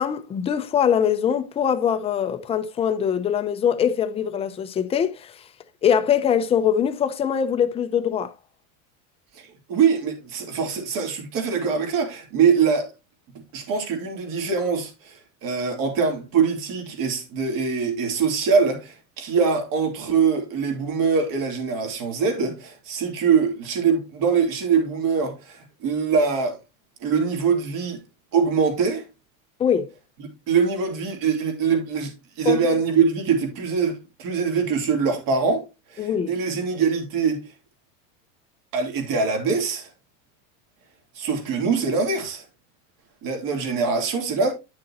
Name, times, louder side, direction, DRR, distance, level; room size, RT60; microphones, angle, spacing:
voice 1, 0.0-5.3 5.8-8.3 29.6-29.9 32.4-32.6 36.0-36.3, left 8 dB, 15° left, 0.5 m, -22 dB
voice 2, 9.3-12.9 13.5-26.6 27.0-28.0 28.3-29.1 30.2-35.6 35.9-37.5 38.7-39.9 41.1-42.4 43.2-44.5, right 5 dB, 55° right, 3.0 m, -23 dB
10.5 x 6.3 x 2.8 m
cardioid pair, 150°, 40 cm